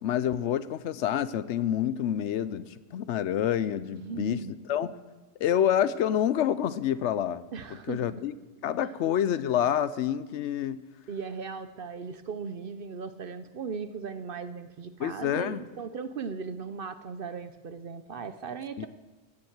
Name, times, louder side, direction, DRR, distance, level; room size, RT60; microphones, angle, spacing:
voice 1, 0.0-4.4 4.7-4.9 5.4-7.4 7.9-8.3 8.6-10.8 15.0-15.6 18.8-18.9, left 10 dB, 75° left, 16 dB, 0.9 m, -27 dB
voice 2, 4.0-4.5 7.5-8.3 8.8-8.9 11.1-18.9, right 5 dB, 55° right, 11 dB, 0.8 m, -38 dB
16.0 x 7.5 x 7.9 m, 1.2 s
omnidirectional pair, 1.2 m